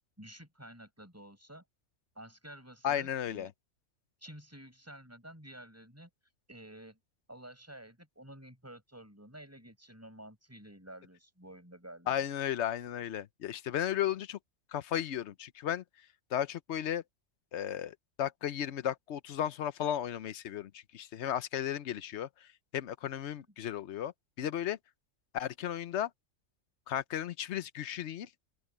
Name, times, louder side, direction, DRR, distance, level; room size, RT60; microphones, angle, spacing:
voice 1, 0.2-1.6 2.2-3.5 4.2-6.1 6.5-7.0 7.3-12.2, right 1 dB, 10° right, 7.3 m, -51 dB
voice 2, 2.8-3.5 12.1-14.4 14.7-15.8 16.3-17.0 17.5-24.8 25.3-26.1 26.9-28.3, left 10 dB, 65° left, 0.9 m, -35 dB
open air
omnidirectional pair, 1.4 m